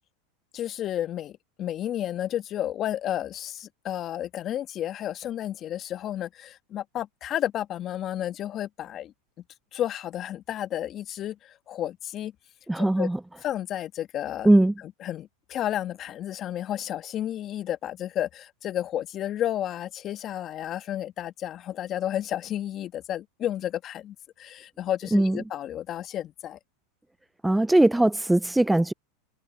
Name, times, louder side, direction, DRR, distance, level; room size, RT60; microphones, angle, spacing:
voice 1, 0.5-9.1 9.7-12.3 12.8-13.1 13.4-14.5 15.0-26.6, left 11 dB, 40° left, 1.7 m, -32 dB
voice 2, 12.7-13.2 14.4-14.7 25.1-25.4 27.4-28.9, right 1 dB, 5° right, 0.3 m, -20 dB
hypercardioid pair, 100°, 0 cm